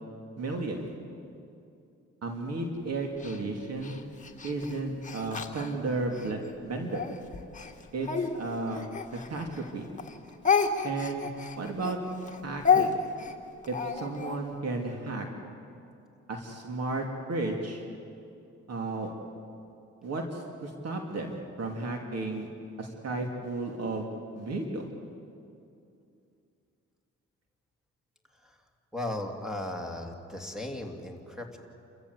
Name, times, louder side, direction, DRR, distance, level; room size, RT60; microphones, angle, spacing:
voice 1, 0.4-0.9 2.2-4.0 4.4-7.1 7.9-8.9 9.3-9.9 10.8-11.3 11.6-12.0 12.4-13.0 13.7-15.3 16.3-17.8 18.7-19.1 20.0-22.5 22.8-24.1 24.3-24.9, right 2 dB, 55° right, 2 dB, 2.7 m, -33 dB
Speech, 3.2-6.3 6.9-9.7 10.0-14.4, left 6 dB, 25° left, 1.9 m, -30 dB
voice 2, 28.9-31.6, left 1 dB, ahead, 2 dB, 2.9 m, -36 dB
28.5 x 14.5 x 8.2 m, 2.6 s
cardioid pair, 90°, 30 cm